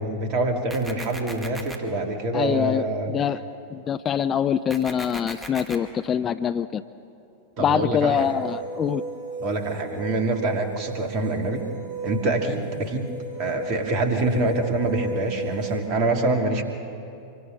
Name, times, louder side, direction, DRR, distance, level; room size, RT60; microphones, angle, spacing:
voice 1, 0.0-3.1 7.6-8.3 9.4-11.6 12.0-16.6, right 2 dB, 40° right, 4 dB, 2.5 m, -25 dB
sound 1, 0.7-1.8 4.7-5.8, right 1 dB, 10° right, 2.2 m, -37 dB
voice 2, 2.3-3.4 3.7-6.8 7.6-9.0, left 8 dB, 25° left, 13 dB, 0.5 m, -24 dB
sound 2, 8.1-15.8, right 3 dB, 75° left, 7.6 m, -35 dB
26.5 x 24.0 x 5.7 m, 2.7 s
figure-of-eight pair, 90°, 0 cm